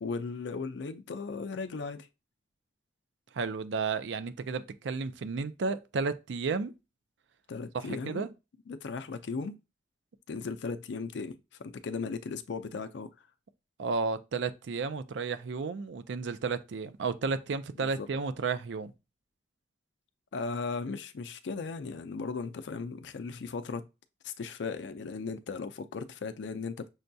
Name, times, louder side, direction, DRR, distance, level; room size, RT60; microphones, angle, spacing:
voice 1, 0.0-2.1 7.5-8.3 8.7-9.6 10.3-13.1 17.8-18.1 20.3-23.9 24.2-26.9, left 4 dB, 80° left, 0.4 m, -37 dB
voice 2, 3.3-6.7 7.7-8.3 13.8-18.9, right 4 dB, 85° right, 0.4 m, -32 dB
6.3 x 2.2 x 2.6 m
head